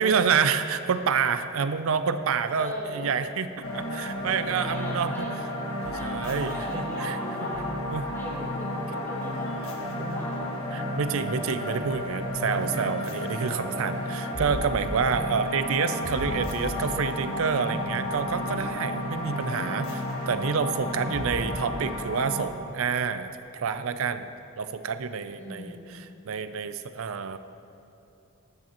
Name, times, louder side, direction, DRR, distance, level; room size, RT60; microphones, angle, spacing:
voice 1, 0.0-5.3 5.9-7.5 7.9-8.1 10.7-24.3 24.6-27.4, right 6 dB, 70° right, 11 dB, 0.5 m, -28 dB
voice 2, 2.5-3.1 4.5-5.3 5.8-7.7 8.0-10.5 13.9-14.5 20.8-21.6 25.4-26.1, equal, 10° left, -6 dB, 2.2 m, -39 dB
sound 1, 3.6-22.5, left 1 dB, 75° left, 1.4 m, -32 dB
14.5 x 9.7 x 3.0 m, 2.7 s
head